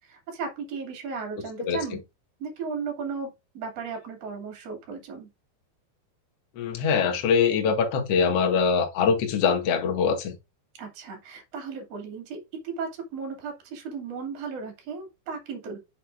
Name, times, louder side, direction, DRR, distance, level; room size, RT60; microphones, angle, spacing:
voice 1, 0.0-2.0 2.4-5.3 10.8-15.8, right 5 dB, 40° right, 3.1 m, -35 dB
voice 2, 6.6-10.3, left 6 dB, 50° left, 1.9 m, -23 dB
8.2 x 6.8 x 2.5 m
omnidirectional pair, 5.1 m